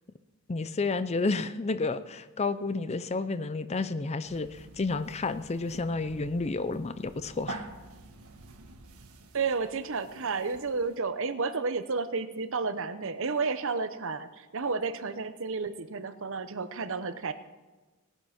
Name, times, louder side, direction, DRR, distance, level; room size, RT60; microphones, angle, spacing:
voice 1, 0.5-7.6, left 3 dB, 30° left, 12 dB, 0.5 m, -31 dB
sound 1, 4.3-11.0, right 2 dB, 75° right, 1.6 m, -47 dB
voice 2, 9.3-17.3, right 4 dB, 60° right, 11 dB, 0.8 m, -31 dB
18.5 x 9.1 x 5.9 m, 1.2 s
head